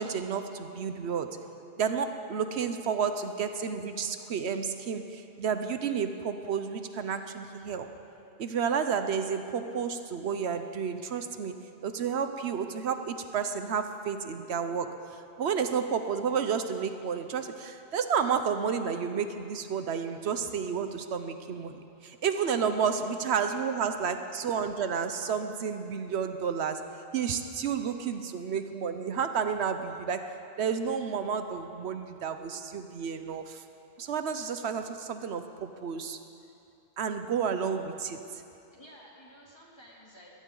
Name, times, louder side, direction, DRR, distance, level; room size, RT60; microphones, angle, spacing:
voice 1, 0.0-1.4 1.8-7.9 8.4-11.6 11.8-26.9 27.1-33.6 34.0-36.2 37.0-38.2, right 6 dB, 85° right, 8 dB, 1.1 m, -31 dB
voice 2, 22.4-22.9 23.5-23.6 37.4-37.8 38.7-40.3, equal, 25° left, -5 dB, 3.0 m, -52 dB
21.5 x 16.0 x 3.9 m, 2.7 s
omnidirectional pair, 1.1 m